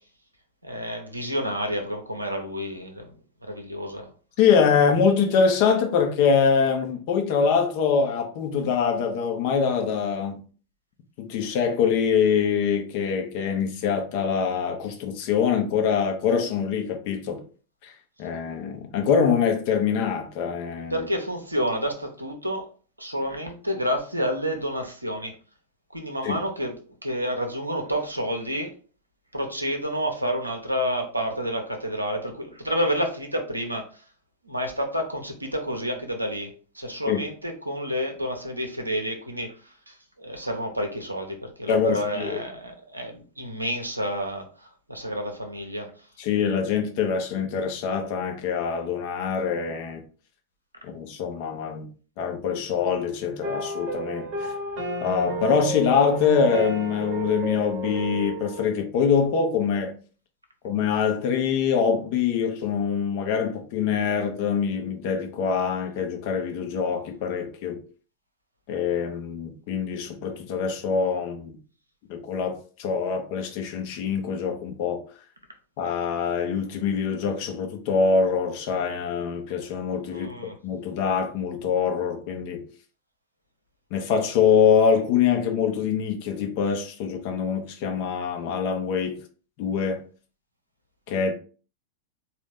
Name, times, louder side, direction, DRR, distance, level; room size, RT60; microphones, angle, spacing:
voice 1, 0.6-3.2 3.4-4.1 20.9-22.7 23.0-25.3 25.9-28.7 29.3-34.0 34.4-45.9 80.1-80.6, equal, 85° right, 0.8 m, -29 dB
voice 2, 4.4-10.4 11.2-17.4 17.8-17.9 18.2-21.1 26.2-26.4 37.1-37.2 41.7-42.4 46.2-50.0 50.8-51.9 52.2-54.5 55.0-60.0 60.6-67.8 68.7-71.6 72.1-75.0 75.8-82.6 83.9-89.2 89.6-90.0 91.1-91.3, left 6 dB, 45° left, 0.8 m, -24 dB
sound 1, 53.4-58.7, right 2 dB, 40° right, 1.0 m, -31 dB
4.0 x 2.7 x 3.6 m
figure-of-eight pair, 90°, 0 cm